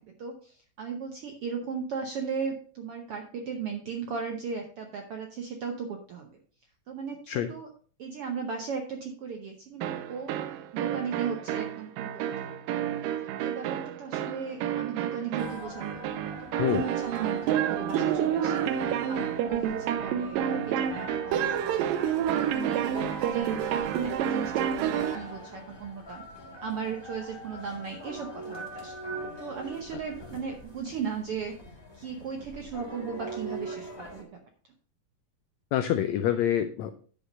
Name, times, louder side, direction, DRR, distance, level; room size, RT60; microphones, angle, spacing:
voice 1, 0.0-6.3 6.9-7.7 8.0-10.3 10.7-12.8 13.4-18.6 19.1-20.4 20.7-22.0 22.3-26.2 26.6-29.0 29.4-31.5 31.9-34.3, right 6 dB, 70° right, 4 dB, 1.3 m, -37 dB
sound 1, 9.8-25.3, right 9 dB, 90° right, 2.4 m, -29 dB
sound 2, 15.4-34.2, right 1 dB, 20° left, 0.7 m, -43 dB
voice 2, 35.7-36.9, left 10 dB, 85° left, 9 dB, 1.5 m, -26 dB
10.5 x 5.2 x 5.3 m, 0.42 s
omnidirectional pair, 3.8 m